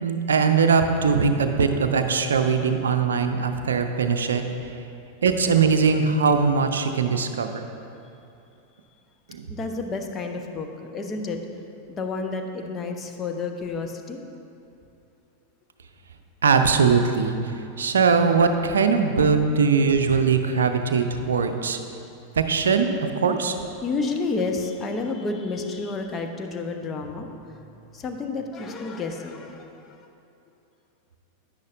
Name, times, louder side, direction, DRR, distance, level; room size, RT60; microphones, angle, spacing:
voice 1, 0.0-4.4 5.2-7.6 9.3-9.5 16.4-21.8 22.4-23.6, right 5 dB, 65° right, 6 dB, 0.5 m, -21 dB
voice 2, 9.5-11.4 11.9-14.2 17.8-18.0 18.6-18.7 23.8-30.1, left 3 dB, 25° left, 4 dB, 0.8 m, -31 dB
10.5 x 9.9 x 2.6 m, 2.7 s
figure-of-eight pair, 90°, 0 cm